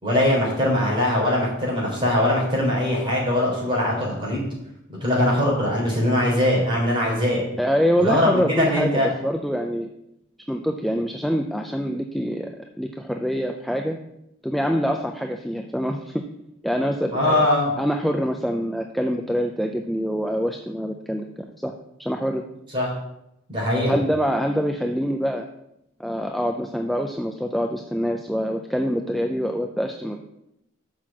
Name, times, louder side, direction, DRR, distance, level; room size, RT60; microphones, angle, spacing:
voice 1, 0.0-4.5 5.0-7.4 8.0-9.1 17.1-17.7 22.7-22.9 23.5-23.9, left 1 dB, 25° right, -4 dB, 3.6 m, -21 dB
voice 2, 7.6-9.9 10.5-14.0 14.4-16.1 16.6-17.5 17.8-21.3 21.6-21.7 22.0-22.4 23.9-25.5 26.0-30.2, equal, ahead, 3 dB, 0.4 m, -25 dB
6.6 x 6.0 x 7.2 m, 0.83 s
head